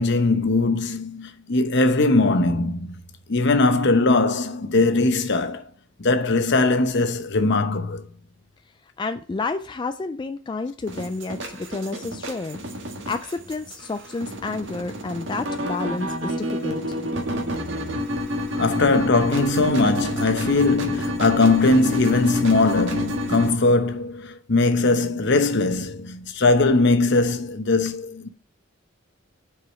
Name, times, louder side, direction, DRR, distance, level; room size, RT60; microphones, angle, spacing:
voice 1, 0.0-3.0 3.3-5.6 6.0-8.0 18.6-28.3, left 3 dB, 60° left, 0.9 m, -20 dB
voice 2, 9.0-12.6 13.0-17.0, left 3 dB, 25° left, 0.3 m, -30 dB
sound 1, 10.9-23.5, left 1 dB, 65° right, 1.6 m, -29 dB
6.2 x 4.8 x 6.7 m
head